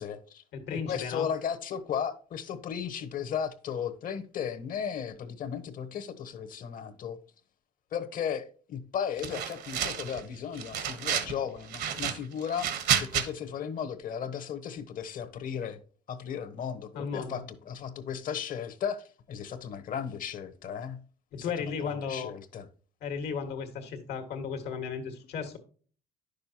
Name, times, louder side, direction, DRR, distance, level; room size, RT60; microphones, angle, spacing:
voice 1, 0.0-0.4 0.7-7.2 7.9-12.7 13.0-15.8 16.1-21.0 21.3-22.7, left 8 dB, 55° left, 1.1 m, -35 dB
voice 2, 0.5-1.3 16.9-17.4 21.3-22.3 23.0-25.6, left 6 dB, 80° left, 1.7 m, -35 dB
sound 1, 9.2-10.2 10.6-11.3 11.7-13.3, right 9 dB, 75° right, 1.3 m, -30 dB
10.5 x 6.6 x 2.9 m
cardioid pair, 110°, 17 cm